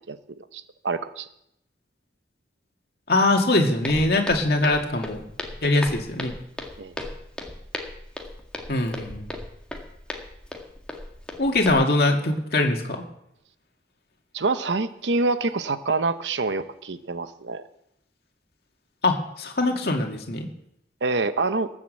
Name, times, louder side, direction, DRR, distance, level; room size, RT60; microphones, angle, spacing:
voice 1, 0.5-1.3 6.8-6.9 14.3-17.6 21.0-21.7, right 3 dB, 80° right, 12 dB, 0.8 m, -26 dB
voice 2, 3.1-5.2 5.6-6.3 8.7-9.3 11.4-13.0 19.0-20.5, left 2 dB, 60° left, 2 dB, 2.3 m, -22 dB
Walk footsteps, 3.8-11.7, left 1 dB, 5° left, 1.8 m, -37 dB
19.5 x 7.6 x 7.7 m, 0.78 s
head